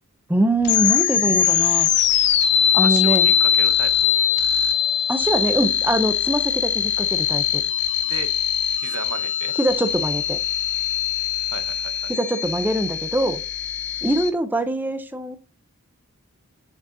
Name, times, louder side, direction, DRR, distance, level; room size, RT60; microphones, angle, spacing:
voice 1, 0.3-1.9 2.7-3.3 5.1-7.6 9.6-10.4 12.1-13.4 14.0-15.4, right 1 dB, 10° right, 0.5 m, -23 dB
sound 1, 0.6-14.3, left 9 dB, 50° left, 0.8 m, -21 dB
voice 2, 2.8-4.2 8.0-8.3 8.8-9.5 11.5-12.1, right 6 dB, 90° right, 0.8 m, -35 dB
6.7 x 6.0 x 2.6 m
head